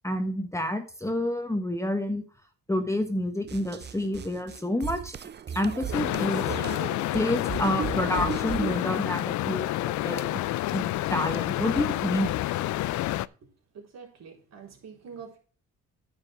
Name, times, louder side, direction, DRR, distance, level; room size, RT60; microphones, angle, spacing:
voice 1, 0.0-2.2 2.7-5.2 5.5-6.4 7.1-10.4 10.7-12.4, left 1 dB, 10° left, 6 dB, 1.3 m, -29 dB
sound 1, 3.5-8.8, right 8 dB, 35° right, 0.5 m, -36 dB
sound 2, 5.9-13.3, left 16 dB, 70° left, 0.5 m, -29 dB
voice 2, 13.3-15.4, right 6 dB, 60° right, 0 dB, 3.9 m, -46 dB
9.6 x 5.3 x 5.9 m, 0.40 s
cardioid pair, 90°, 30 cm